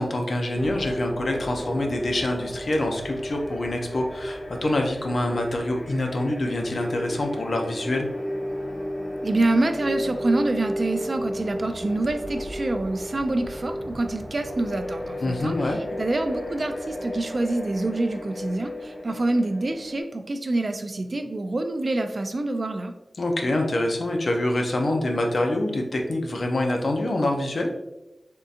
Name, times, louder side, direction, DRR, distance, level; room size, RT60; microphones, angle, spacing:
voice 1, 0.0-8.1 15.2-15.8 23.2-27.7, left 1 dB, 70° left, 2 dB, 0.5 m, -26 dB
sound 1, 0.5-20.0, equal, 85° left, 1.4 m, -33 dB
voice 2, 9.2-22.9, right 2 dB, 50° right, 7 dB, 0.3 m, -26 dB
3.6 x 2.7 x 2.4 m, 0.95 s
wide cardioid pair, 75°, 0 cm